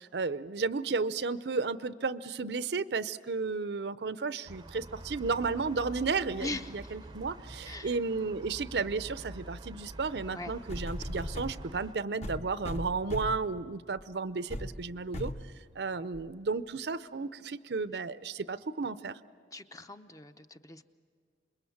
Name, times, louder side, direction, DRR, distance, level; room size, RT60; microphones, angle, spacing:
voice 1, 0.0-15.3 15.8-19.2, right 4 dB, 70° right, 14 dB, 0.6 m, -33 dB
sound 1, 4.4-11.9, right 1 dB, 25° right, 0.6 m, -47 dB
voice 2, 6.4-6.9 7.6-8.0 10.3-10.5 19.5-20.8, left 2 dB, 20° left, 8 dB, 0.7 m, -41 dB
sound 2, 10.2-10.3 10.7-11.6 12.2-13.5 14.0-14.1 14.5-14.7 15.1-15.4 16.1-16.2, equal, 40° left, 1.1 m, -37 dB
27.0 x 21.5 x 7.2 m, 2.2 s
head